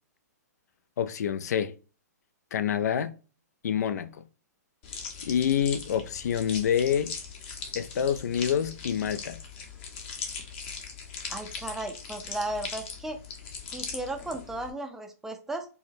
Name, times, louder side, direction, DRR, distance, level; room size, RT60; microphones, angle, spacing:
voice 1, 1.0-1.7 2.5-3.1 3.6-4.1 5.2-7.1 7.7-9.4, left 8 dB, 70° left, 0.4 m, -27 dB
sound 1, 4.8-14.7, left 5 dB, 40° left, 0.9 m, -40 dB
voice 2, 11.3-13.2 13.7-15.7, right 2 dB, 5° right, 0.4 m, -35 dB
4.6 x 2.1 x 2.6 m
hypercardioid pair, 140°, 9 cm